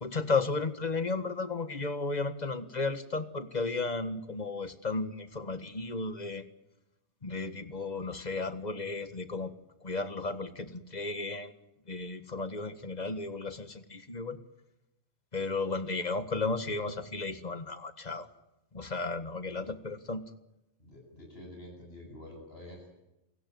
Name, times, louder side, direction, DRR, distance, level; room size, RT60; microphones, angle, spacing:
voice 1, 0.0-6.4 7.2-9.5 9.8-11.5 11.9-14.4 15.3-18.3 18.7-20.2, left 3 dB, 40° left, 11 dB, 1.8 m, -34 dB
voice 2, 20.8-22.9, left 1 dB, 60° left, 0 dB, 8.5 m, -48 dB
29.0 x 17.0 x 9.3 m, 0.92 s
omnidirectional pair, 1.2 m